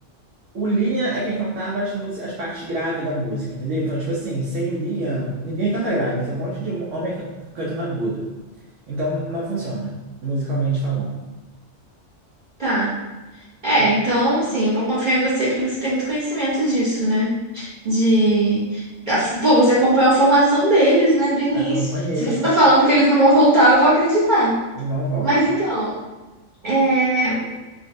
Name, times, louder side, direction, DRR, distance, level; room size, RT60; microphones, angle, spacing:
voice 1, 0.5-7.3 7.5-8.3 8.9-10.0 10.2-11.2 21.5-22.4 24.8-25.5, right 2 dB, 80° right, -7 dB, 1.0 m, -25 dB
voice 2, 12.6-12.9 13.6-21.9 22.2-24.5 25.2-25.9 26.6-27.4, right 1 dB, 45° right, -10 dB, 0.9 m, -18 dB
3.8 x 2.2 x 2.6 m, 1.1 s
omnidirectional pair, 1.3 m